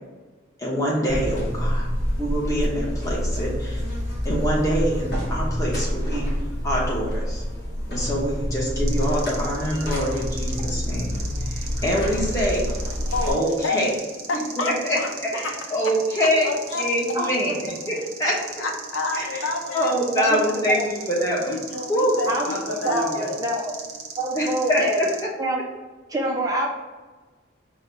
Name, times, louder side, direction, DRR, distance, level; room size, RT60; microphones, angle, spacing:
voice 1, 0.6-1.9 2.2-3.8 4.2-6.3 6.6-7.4 7.9-11.1 11.5-12.7 13.3-13.9 14.6-17.6 17.9-18.4 19.1-19.4 19.7-21.6 21.9-23.3 24.3-25.1, equal, 15° left, -5 dB, 1.0 m, -25 dB
Buzz, 1.1-13.3, equal, 55° left, 1.3 m, -27 dB
sound 1, 8.9-25.2, right 5 dB, 90° right, 0.7 m, -39 dB
voice 2, 10.5-11.7 13.1-13.3 13.6-13.9 14.3-15.5 16.4-16.9 18.6-19.9 21.4-23.4, left 3 dB, 80° left, 3 dB, 0.6 m, -30 dB
voice 3, 17.1-17.6 20.2-20.8 22.3-22.5 22.8-23.7 24.2-25.0 25.4-25.6 26.1-26.7, right 1 dB, 20° right, -1 dB, 0.6 m, -26 dB
5.0 x 2.3 x 3.9 m, 1.3 s
head